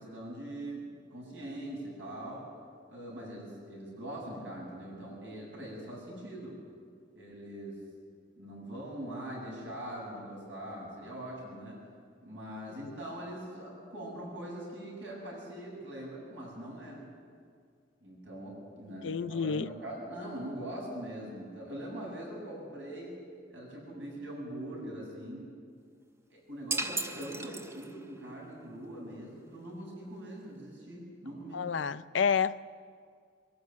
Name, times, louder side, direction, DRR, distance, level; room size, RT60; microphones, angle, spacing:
voice 1, 0.0-2.4 2.9-6.6 7.1-7.8 8.4-11.8 12.2-17.0 18.0-23.1 23.5-25.5 26.3-31.6, right 1 dB, 85° right, -3 dB, 7.9 m, -42 dB
voice 2, 19.0-19.7 31.5-32.6, left 6 dB, 85° left, 16 dB, 0.5 m, -29 dB
sound 1, 26.7-28.2, right 2 dB, 15° right, 0.7 m, -35 dB
22.0 x 13.0 x 9.4 m, 2.1 s
head